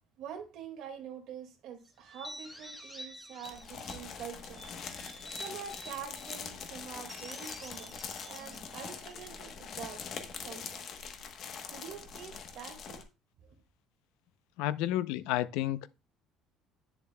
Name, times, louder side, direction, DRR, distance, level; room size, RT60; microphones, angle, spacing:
voice 1, 0.2-4.8 5.3-8.0 8.3-10.0 10.3-10.9 11.7-13.0, right 7 dB, 55° right, 1.9 m, -45 dB
sound 1, 2.0-4.1 4.5-6.4 7.0-9.5, equal, ahead, 1.1 m, -49 dB
sound 2, 3.4-13.0, left 6 dB, 40° left, 1.0 m, -43 dB
voice 2, 14.6-15.9, left 13 dB, 90° left, 0.5 m, -31 dB
10.0 x 7.1 x 2.2 m
cardioid pair, 175°, 0 cm